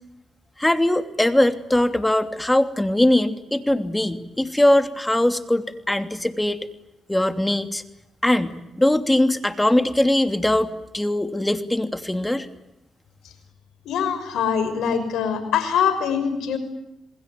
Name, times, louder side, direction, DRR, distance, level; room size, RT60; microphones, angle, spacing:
voice 1, 0.6-6.6 7.1-7.8 8.2-10.7 10.9-12.5, left 1 dB, 10° left, 9 dB, 2.9 m, -21 dB
voice 2, 13.8-16.6, left 7 dB, 80° left, 10 dB, 6.2 m, -23 dB
28.5 x 20.5 x 9.4 m, 0.88 s
supercardioid pair, 60°, 0 cm